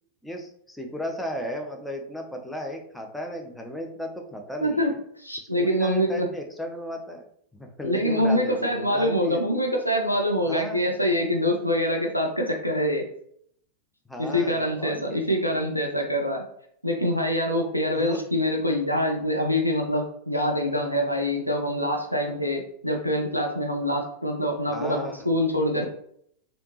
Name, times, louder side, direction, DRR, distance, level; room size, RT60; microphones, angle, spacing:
voice 1, 0.2-5.0 5.6-7.3 7.5-9.4 10.5-11.0 14.1-15.2 17.9-18.2 24.7-25.3 25.7-25.9, equal, 5° left, 3 dB, 0.5 m, -35 dB
voice 2, 4.6-4.9 5.2-6.3 7.8-13.0 14.2-16.4 16.8-25.9, equal, 90° left, 1 dB, 0.6 m, -25 dB
3.4 x 2.8 x 2.8 m, 0.67 s
figure-of-eight pair, 90°, 0 cm